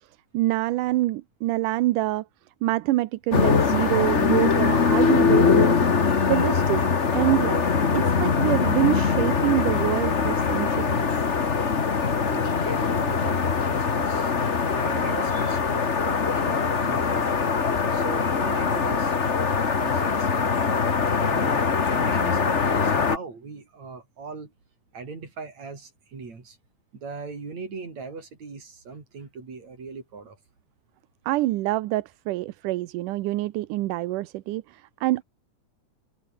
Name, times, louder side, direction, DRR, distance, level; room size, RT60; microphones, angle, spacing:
voice 1, 0.3-2.2 2.6-5.8 6.3-6.8 7.1-7.6 7.9-11.1 31.3-35.2, right 17 dB, 80° right, 2.3 m, -26 dB
sound 1, 3.3-23.2, left 5 dB, 45° left, 0.9 m, -22 dB
voice 2, 11.9-14.3 14.8-17.5 17.9-19.1 19.7-20.8 21.1-24.5 24.9-26.6 26.9-30.4, right 4 dB, 55° right, 6.4 m, -39 dB
omnidirectional pair, 3.8 m